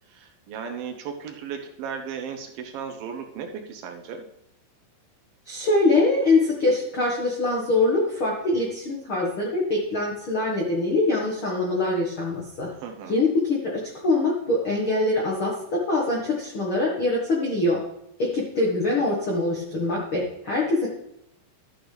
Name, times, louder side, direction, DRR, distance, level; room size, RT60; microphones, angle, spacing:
voice 1, 0.1-4.3 12.7-13.2, right 7 dB, 75° right, 4 dB, 2.1 m, -36 dB
voice 2, 5.4-12.7 13.1-13.7 14.0-17.8 18.2-20.9, left 2 dB, 70° left, -3 dB, 1.2 m, -23 dB
13.0 x 8.4 x 3.4 m, 0.79 s
omnidirectional pair, 5.3 m